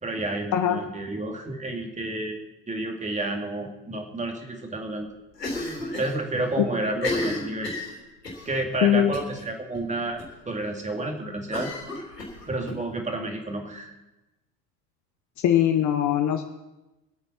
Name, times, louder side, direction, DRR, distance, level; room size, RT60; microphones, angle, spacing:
voice 1, 0.0-2.4 2.7-5.1 6.0-7.7 8.5-10.2 10.5-11.7 12.5-13.9, right 2 dB, 15° right, 3 dB, 2.4 m, -30 dB
Cough, 5.4-6.2 6.4-6.5 6.9-8.5 9.1-9.4 9.7-9.8 10.2-10.3 11.5-12.8, left 2 dB, 85° left, 3.6 m, -31 dB
voice 2, 8.8-9.1 15.4-16.4, left 11 dB, 35° left, 6 dB, 1.0 m, -21 dB
24.5 x 8.7 x 4.4 m, 1.0 s
figure-of-eight pair, 75°, 48 cm